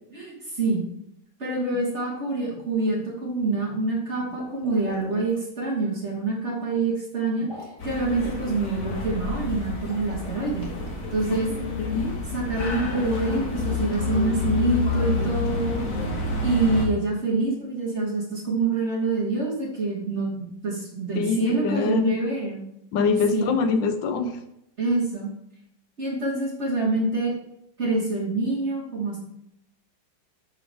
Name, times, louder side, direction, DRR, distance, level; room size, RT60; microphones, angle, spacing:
voice 1, 0.1-0.9 1.4-7.5 7.8-10.7 11.1-11.5 12.3-15.8 16.4-22.6 23.3-23.5 24.8-25.3 26.0-27.3 27.8-29.2, right 3 dB, 40° right, -3 dB, 1.4 m, -26 dB
sound 1, 4.3-5.4 7.3-7.9 9.7-10.9 12.8-14.5, left 1 dB, 15° left, 1.6 m, -43 dB
sound 2, 7.8-16.9, left 3 dB, 50° left, 1.4 m, -29 dB
voice 2, 11.8-12.1 21.1-22.2 22.9-24.3, left 5 dB, 75° left, 8 dB, 1.3 m, -23 dB
5.9 x 5.3 x 3.4 m, 0.77 s
omnidirectional pair, 2.1 m